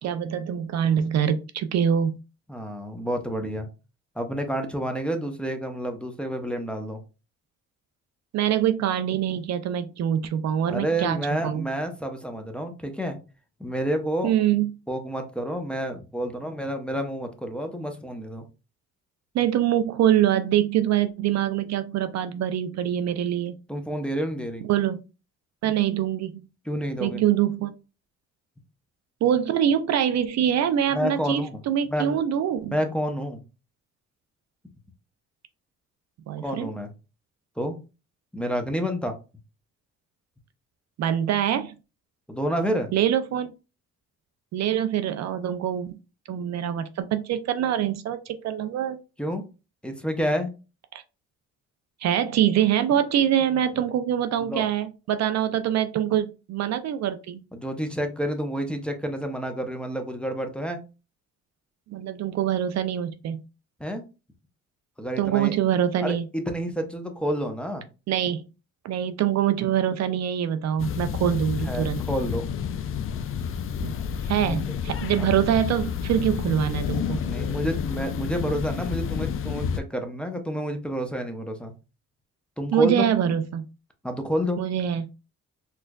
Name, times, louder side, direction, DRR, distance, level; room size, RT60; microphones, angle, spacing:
voice 1, 0.0-2.2 8.3-11.7 14.2-14.7 19.3-23.6 24.7-25.0 25.6-26.4 27.0-27.7 29.2-32.8 36.3-36.7 41.0-41.8 42.9-43.5 44.5-46.0 46.3-49.0 50.9-51.0 52.0-57.4 61.9-63.4 65.2-66.2 68.1-68.4 68.8-72.0 73.8-73.9 74.2-77.2 82.7-83.6 84.6-85.1, right 10 dB, 60° right, 10 dB, 0.4 m, -24 dB
voice 2, 2.5-3.7 4.2-7.0 10.7-13.2 13.6-14.3 14.9-18.4 23.7-24.7 26.6-27.2 30.9-31.6 31.9-32.2 32.7-33.4 36.4-36.9 37.6-37.8 38.3-39.1 42.3-42.9 49.2-49.5 49.8-50.5 54.4-54.7 57.5-60.8 63.8-64.0 65.0-65.5 66.0-67.8 71.6-72.4 74.5-74.8 75.2-75.3 77.2-81.7 82.6-83.1 84.0-84.6, equal, 5° left, 3 dB, 0.6 m, -29 dB
sound 1, 70.8-79.8, left 7 dB, 45° left, 0.4 m, -30 dB
4.3 x 2.4 x 2.3 m, 0.31 s
cardioid pair, 90°, 30 cm